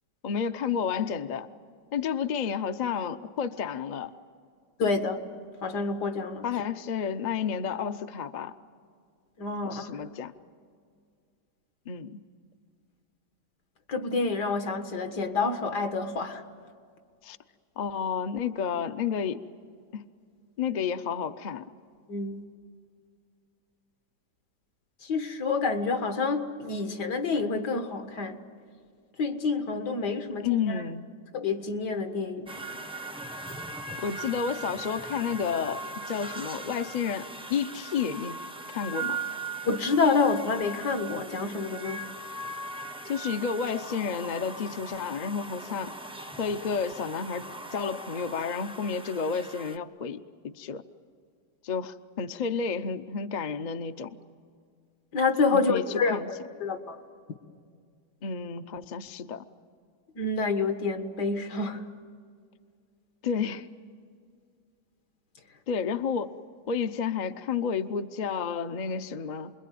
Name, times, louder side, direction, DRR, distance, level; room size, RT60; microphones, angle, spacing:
voice 1, 0.2-1.5 1.9-4.1 6.4-8.5 9.6-10.3 11.9-12.2 17.2-17.4 17.8-19.4 19.9-20.1 20.6-21.7 30.4-31.1 34.0-38.4 38.7-39.2 43.0-46.0 46.4-50.8 51.6-54.2 55.5-56.3 58.2-59.4 63.2-63.7 65.7-66.4 66.7-69.5, left 6 dB, 45° left, 9 dB, 0.6 m, -31 dB
voice 2, 4.8-5.2 5.6-6.5 9.4-9.9 13.9-16.4 22.1-22.4 25.0-28.4 29.2-30.8 31.3-32.5 39.7-42.1 55.1-56.2 56.6-57.0 60.2-61.8, left 4 dB, 75° left, 7 dB, 2.2 m, -28 dB
sound 1, 32.5-49.8, right 2 dB, 5° right, 0.4 m, -39 dB
29.0 x 22.0 x 9.3 m, 2.2 s
omnidirectional pair, 1.8 m